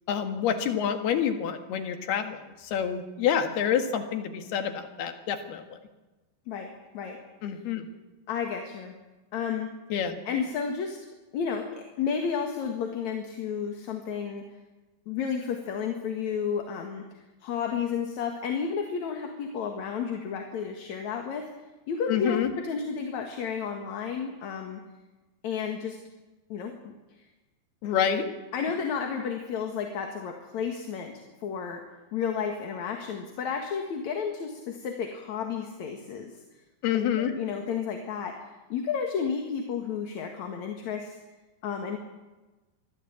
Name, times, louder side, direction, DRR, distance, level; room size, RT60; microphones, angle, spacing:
voice 1, 0.1-5.8 7.4-7.8 9.9-10.2 22.1-22.5 27.8-28.3 36.8-37.3, left 8 dB, 80° left, 7 dB, 3.8 m, -28 dB
voice 2, 6.5-7.2 8.3-8.9 9.3-9.7 10.3-11.0 11.3-14.4 15.1-21.5 21.9-24.8 25.4-26.0 26.5-26.9 28.5-31.8 32.1-36.3 36.9-41.2 41.6-42.0, left 6 dB, 55° left, 4 dB, 2.8 m, -32 dB
24.5 x 16.0 x 8.7 m, 1.2 s
omnidirectional pair, 4.5 m